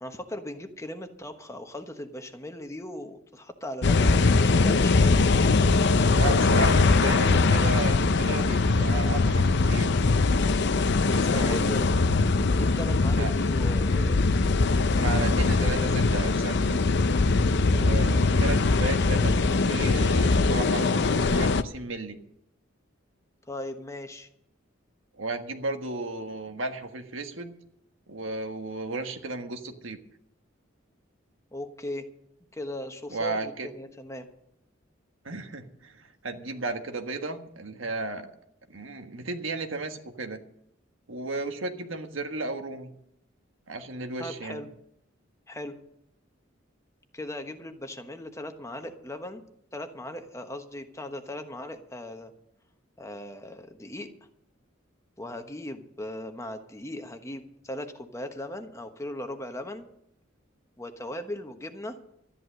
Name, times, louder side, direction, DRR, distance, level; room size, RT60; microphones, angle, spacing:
voice 1, 0.0-5.2 11.3-11.9 12.5-14.2 23.5-24.3 31.5-32.1 32.5-34.3 44.2-44.7 45.5-45.7 47.1-49.4 49.7-52.3 53.0-54.1 55.2-59.9 60.8-62.0, left 1 dB, 15° left, 6 dB, 1.1 m, -38 dB
sound 1, 3.8-21.6, left 3 dB, 60° left, 0.6 m, -22 dB
voice 2, 6.1-10.0 11.1-11.8 13.1-13.3 14.9-16.8 17.6-22.2 25.1-27.5 28.1-30.0 33.1-33.7 35.2-38.3 38.7-40.4 41.1-42.9 43.7-44.6, right 2 dB, 75° right, 6 dB, 1.5 m, -34 dB
13.0 x 11.0 x 6.5 m, 0.76 s
head